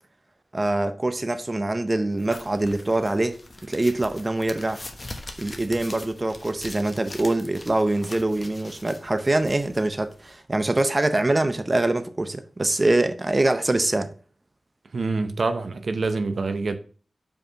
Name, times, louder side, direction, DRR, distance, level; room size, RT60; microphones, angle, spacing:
voice 1, 0.5-4.8 5.4-14.1, right 2 dB, 30° right, 0.7 m, -24 dB
sound 1, 2.2-10.4, left 2 dB, 35° left, 1.1 m, -42 dB
voice 2, 14.9-16.7, right 3 dB, 70° right, 0.7 m, -26 dB
5.3 x 4.7 x 5.6 m
cardioid pair, 55°, 0 cm